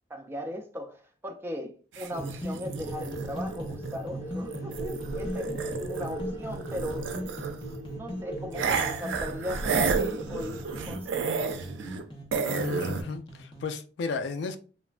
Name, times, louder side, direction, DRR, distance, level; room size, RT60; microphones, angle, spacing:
voice 1, 0.1-7.1 7.9-11.4, left 1 dB, 15° right, 0.4 m, -38 dB
sound 1, 1.9-6.2 6.5-7.7 8.5-12.0 12.3-13.0, right 5 dB, 90° right, 0.4 m, -32 dB
sound 2, 2.1-13.6, equal, 30° left, 0.7 m, -39 dB
sound 3, 2.8-11.7, right 1 dB, 45° left, 1.4 m, -40 dB
voice 2, 12.4-14.6, left 4 dB, 70° left, 0.3 m, -34 dB
3.0 x 2.1 x 2.4 m
head